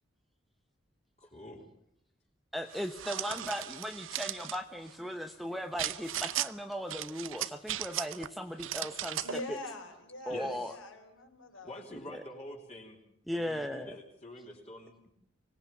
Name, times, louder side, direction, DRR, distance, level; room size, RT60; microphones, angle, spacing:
voice 1, 1.2-1.7 10.3-10.8 11.6-13.0 13.3-15.1, left 1 dB, 30° left, -1 dB, 3.7 m, -46 dB
voice 2, 2.5-9.6 10.3-10.7 12.1-12.2 13.3-13.9, equal, ahead, 6 dB, 0.9 m, -37 dB
sound 1, 2.7-4.6 5.8-6.5 6.9-8.3 8.6-9.4, right 12 dB, 75° right, 0.8 m, -37 dB
voice 3, 9.2-11.8, left 2 dB, 75° left, 5 dB, 5.3 m, -43 dB
24.5 x 18.5 x 7.1 m, 0.76 s
head